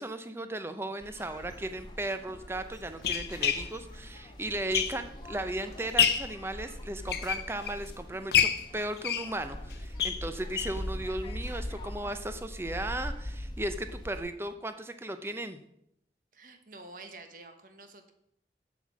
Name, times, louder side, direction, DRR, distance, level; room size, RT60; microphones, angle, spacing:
voice 1, 0.0-15.6, right 1 dB, 15° right, 9 dB, 0.6 m, -36 dB
sound 1, 1.0-14.2, left 1 dB, 25° left, 1.1 m, -42 dB
sound 2, 1.4-1.6 2.3-5.3 5.7-6.4 6.9-7.9 8.3-10.8 11.2-11.3 11.6-11.7 12.0-12.1, left 8 dB, 65° left, 0.6 m, -29 dB
voice 2, 16.3-18.1, right 2 dB, 50° right, 7 dB, 1.2 m, -49 dB
7.7 x 7.5 x 6.2 m, 0.74 s
head